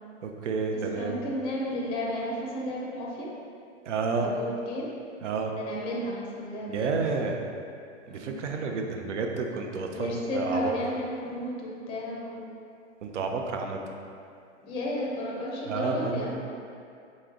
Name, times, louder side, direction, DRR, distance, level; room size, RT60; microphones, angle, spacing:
voice 1, 0.2-1.1 3.8-4.3 5.2-5.5 6.7-7.4 8.1-10.7 13.0-13.8 15.7-16.3, right 4 dB, 80° right, 2 dB, 0.6 m, -30 dB
voice 2, 1.0-3.3 4.2-4.9 5.5-7.3 8.1-8.4 9.9-12.4 14.6-16.4, left 1 dB, 15° left, -3 dB, 0.5 m, -33 dB
3.9 x 3.2 x 3.7 m, 2.4 s
hypercardioid pair, 130°, 35 cm